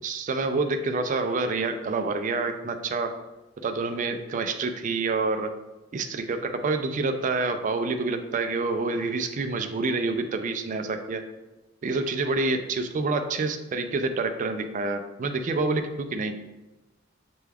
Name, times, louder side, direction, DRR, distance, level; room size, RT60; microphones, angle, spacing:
voice 1, 0.0-3.1 3.6-5.5 5.9-11.2 11.8-16.3, right 3 dB, 40° right, 7 dB, 0.3 m, -27 dB
6.8 x 2.3 x 3.3 m, 1.1 s
head